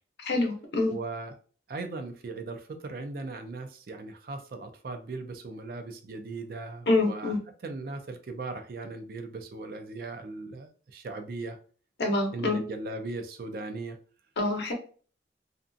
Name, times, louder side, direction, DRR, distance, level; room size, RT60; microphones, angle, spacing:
voice 1, 0.2-1.0 6.9-7.4 12.0-12.6 14.4-14.7, left 2 dB, 75° left, 0.7 m, -26 dB
voice 2, 0.9-1.3 1.7-7.3 7.6-11.6 12.3-14.0, right 3 dB, 55° right, 0.3 m, -38 dB
2.5 x 2.3 x 2.5 m
head